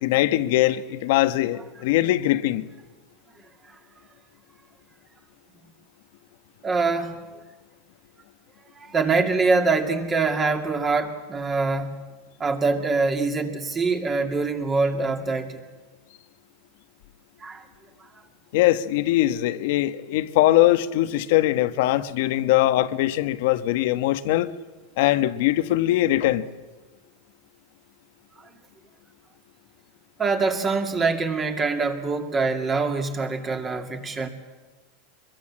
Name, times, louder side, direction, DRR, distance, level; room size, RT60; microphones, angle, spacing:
voice 1, 0.0-2.7 18.5-24.5 25.0-26.5, left 15 dB, 65° left, 1.2 m, -21 dB
voice 2, 6.6-7.2 8.7-11.9 12.4-15.6 17.4-17.6 30.2-34.3, right 4 dB, 20° right, 2.4 m, -24 dB
24.0 x 22.5 x 7.5 m
supercardioid pair, 135°, 0 cm